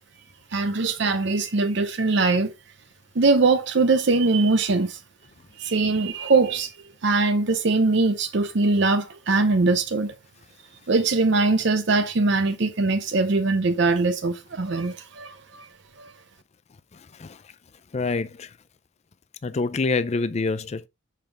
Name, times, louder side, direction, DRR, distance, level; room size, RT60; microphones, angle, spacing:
voice 1, 0.5-2.5 3.1-5.0 5.6-6.7 7.0-10.1 10.9-15.7 16.0-16.1, right 3 dB, 65° right, 0.7 m, -22 dB
voice 2, 17.9-18.5 19.4-20.9, left 3 dB, 35° left, 0.4 m, -26 dB
6.9 x 5.8 x 3.3 m
head